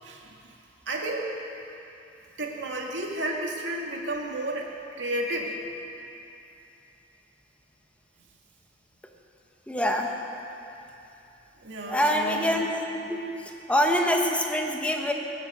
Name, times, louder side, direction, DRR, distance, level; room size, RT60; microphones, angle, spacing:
voice 1, 0.0-0.5 0.9-1.3 2.4-4.7 5.0-5.6 11.6-12.5, right 1 dB, 85° right, -1 dB, 2.1 m, -32 dB
voice 2, 9.7-10.1 11.9-12.7 12.9-13.2 13.7-15.1, equal, 5° left, 1 dB, 1.2 m, -24 dB
19.0 x 11.0 x 6.7 m, 2.8 s
head